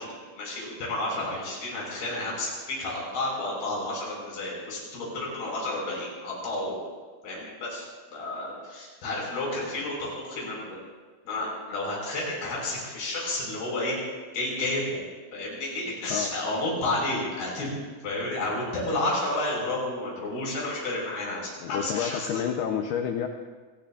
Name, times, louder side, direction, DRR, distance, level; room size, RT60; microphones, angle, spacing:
voice 1, 0.0-6.8 7.2-7.9 8.1-10.8 11.3-14.0 14.3-15.0 15.3-17.8 18.0-22.3, left 2 dB, 50° left, -4 dB, 7.6 m, -31 dB
voice 2, 21.6-23.3, left 8 dB, 90° left, 4 dB, 2.2 m, -29 dB
29.0 x 19.0 x 2.5 m, 1.4 s
omnidirectional pair, 5.7 m